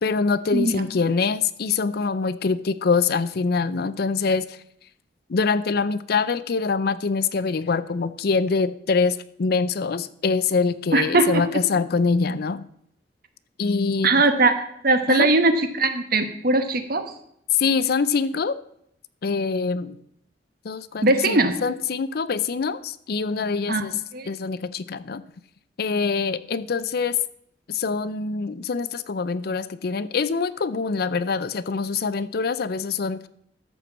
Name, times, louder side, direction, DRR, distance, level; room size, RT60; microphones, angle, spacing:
voice 1, 0.0-4.6 5.3-12.7 13.6-14.2 15.1-15.3 17.5-18.6 19.2-20.0 20.6-25.2 25.8-27.2 27.7-33.2, left 4 dB, 60° left, 15 dB, 0.5 m, -24 dB
voice 2, 10.9-11.4 14.0-17.0 21.0-21.6 23.7-23.8 24.1-24.3, right 2 dB, 55° right, 9 dB, 1.1 m, -20 dB
13.5 x 4.5 x 7.3 m, 0.72 s
head